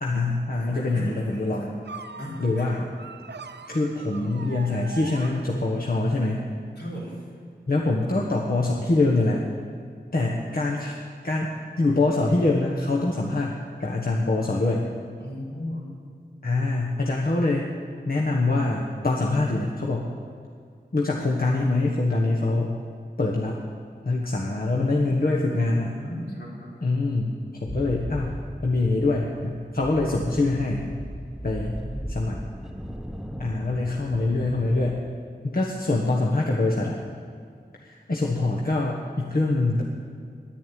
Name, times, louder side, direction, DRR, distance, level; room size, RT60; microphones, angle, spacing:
voice 1, 0.0-1.7 2.4-2.9 3.7-6.5 7.7-9.4 10.1-10.9 11.2-11.5 11.8-14.9 16.4-17.7 18.0-20.1 20.9-22.7 23.2-23.6 24.0-26.0 26.8-30.9 31.4-31.8 32.1-32.4 33.4-35.0 35.4-37.0 37.8-39.8, left 2 dB, 60° left, -2 dB, 1.4 m, -24 dB
voice 2, 0.5-1.7 2.2-2.8 6.8-7.2 10.5-10.8 15.2-15.9 26.0-26.7 31.7-32.1, equal, 85° left, -7 dB, 5.0 m, -37 dB
sound 1, 1.8-6.0, right 5 dB, 75° right, 0.5 m, -42 dB
sound 2, 27.7-35.0, equal, 5° right, 0.9 m, -37 dB
10.5 x 10.5 x 9.4 m, 2.1 s
wide cardioid pair, 65°, 18 cm